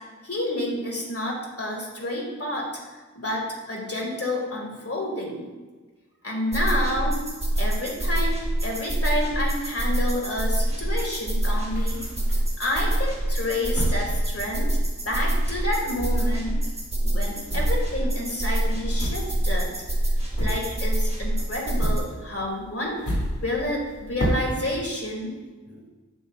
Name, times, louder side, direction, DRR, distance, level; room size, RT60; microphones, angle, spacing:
voice 1, 0.2-5.5 6.2-7.2 7.6-12.0 12.6-14.7 15.1-16.7 17.0-19.7 20.4-25.3 25.7-25.8, left 1 dB, 50° left, -1 dB, 1.8 m, -29 dB
sound 1, 6.5-22.0, right 1 dB, 20° right, 1.4 m, -25 dB
sound 2, 10.5-12.6 13.1-15.2 15.4-21.1 21.4-24.8, equal, 70° left, 2.1 m, -33 dB
7.2 x 7.0 x 2.4 m, 1.3 s
wide cardioid pair, 55°, 31 cm